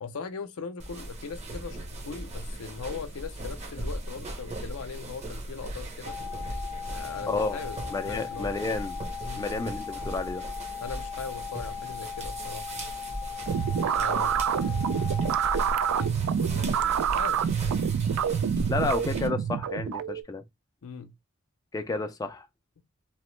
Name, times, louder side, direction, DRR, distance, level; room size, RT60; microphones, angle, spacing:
voice 1, 0.0-6.2 6.9-7.8 8.1-8.6 9.2-9.5 10.8-12.9 13.9-14.9 15.9-17.4 20.8-21.1, left 5 dB, 75° left, 0.5 m, -40 dB
sound 1, 0.8-19.3, right 1 dB, 30° right, 0.7 m, -38 dB
sound 2, 6.1-16.1, left 8 dB, 55° right, 1.1 m, -39 dB
voice 2, 7.3-7.6 7.9-9.0 9.4-10.4 18.7-20.4 21.7-22.5, left 3 dB, 15° left, 0.3 m, -31 dB
sound 3, 13.5-20.2, right 8 dB, 80° right, 0.3 m, -27 dB
3.0 x 2.0 x 3.0 m
head